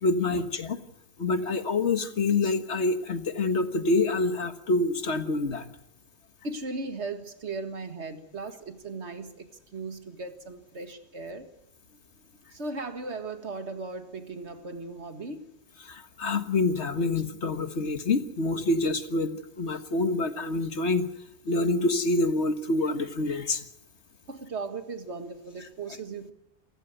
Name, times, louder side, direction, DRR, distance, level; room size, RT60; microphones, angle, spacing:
voice 1, 0.0-0.8 1.2-5.7 15.8-21.1 21.5-23.6, left 2 dB, 85° left, 9 dB, 1.8 m, -26 dB
voice 2, 6.4-11.5 12.5-15.5 24.3-26.3, right 3 dB, 85° right, 8 dB, 2.1 m, -37 dB
28.0 x 15.0 x 8.0 m, 0.82 s
omnidirectional pair, 1.1 m